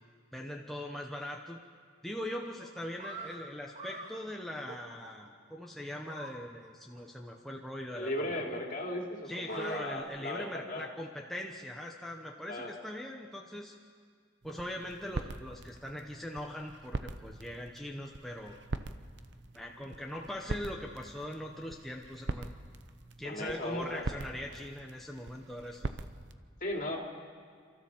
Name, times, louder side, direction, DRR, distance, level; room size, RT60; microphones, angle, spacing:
voice 1, 0.3-1.6 2.0-8.5 9.2-13.7 14.4-18.6 19.5-22.5 23.2-25.9, left 1 dB, ahead, 0 dB, 0.9 m, -41 dB
sound 1, 2.6-3.3 3.7-4.1 4.7-5.3 6.1-6.3 6.6-6.7 7.0-7.1 7.4-7.5 9.2-10.0, right 3 dB, 35° right, 2.1 m, -45 dB
voice 2, 7.9-10.9 12.5-12.7 23.2-24.0 26.6-27.0, left 1 dB, 45° left, 0 dB, 2.8 m, -36 dB
sound 2, 14.4-26.4, right 2 dB, 60° right, 0.8 m, -43 dB
28.0 x 13.5 x 7.2 m, 2.1 s
head